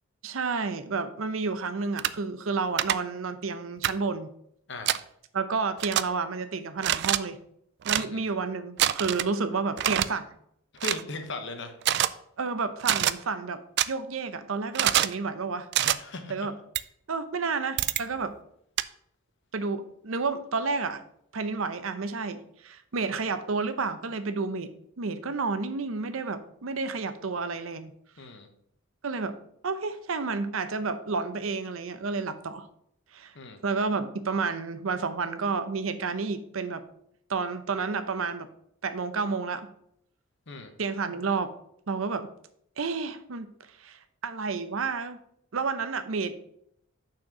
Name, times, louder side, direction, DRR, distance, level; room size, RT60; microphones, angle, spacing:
voice 1, 0.2-4.3 5.3-7.4 7.8-10.3 12.4-13.6 13.9-15.7 16.3-16.6 17.1-18.3 19.5-21.0 21.3-27.9 29.0-29.4 29.6-32.7 33.1-33.3 33.6-36.8 37.3-38.5 38.8-39.7 40.8-41.5 41.9-42.3 42.8-43.5 43.8-45.2 45.5-46.4, right 4 dB, 80° right, 11 dB, 0.7 m, -30 dB
sound 1, 2.0-2.1 2.8-2.9 3.8-4.0 4.9-5.0 5.8-6.0 6.8-7.2 7.8-8.0 8.8-9.3 9.8-10.1 10.8-11.0 11.8-12.1 12.8-13.1 13.8-13.9 14.8-15.1 15.7-16.0 16.8-16.9 17.8-18.0 18.8-18.9, right 12 dB, 55° right, 0.3 m, -25 dB
voice 2, 7.9-8.2 10.8-11.7 15.8-16.5 28.2-28.5 33.3-33.6 40.5-40.7, left 3 dB, 60° left, 6 dB, 1.1 m, -38 dB
6.2 x 4.4 x 5.9 m, 0.70 s
head